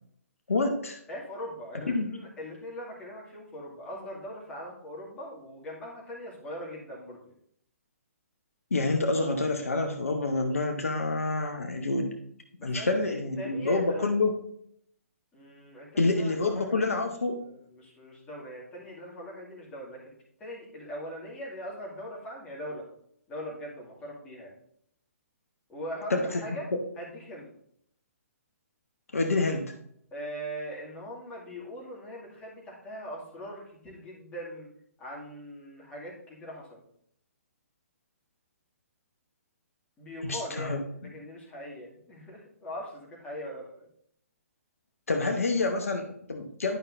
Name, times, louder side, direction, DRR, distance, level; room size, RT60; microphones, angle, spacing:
voice 1, 0.5-1.0 1.9-2.1 8.7-12.1 12.6-14.3 16.0-17.4 26.1-26.4 29.1-29.7 40.3-40.8 45.1-46.8, left 3 dB, 65° left, 4 dB, 0.9 m, -27 dB
voice 2, 1.1-7.2 12.6-14.1 15.3-20.1 20.4-22.9 23.3-24.5 25.7-26.6 27.0-27.5 30.1-34.7 35.0-36.8 40.0-43.7, equal, 15° left, -5 dB, 2.3 m, -41 dB
11.0 x 5.5 x 2.6 m, 0.69 s
figure-of-eight pair, 125°, 8 cm